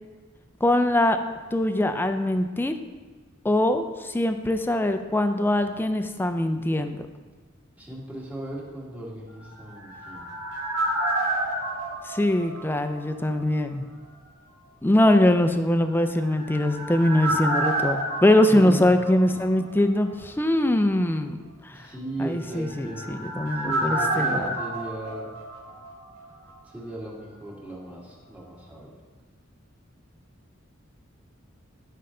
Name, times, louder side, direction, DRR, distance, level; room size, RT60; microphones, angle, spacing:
voice 1, 0.6-1.2 1.5-2.7 3.4-7.1 12.0-13.9 14.8-21.4 21.6-21.9 22.2-24.5, left 1 dB, 10° left, 8 dB, 0.4 m, -22 dB
voice 2, 7.8-10.4 18.5-19.0 21.7-23.2 23.5-25.3 26.6-29.0, right 1 dB, 10° right, -5 dB, 1.8 m, -36 dB
sound 1, 9.4-13.3 13.5-13.6 16.0-19.8 20.0-20.1 22.4-26.2 26.5-26.6, right 1 dB, 85° right, 2.2 m, -30 dB
11.5 x 5.5 x 3.8 m, 1.4 s
head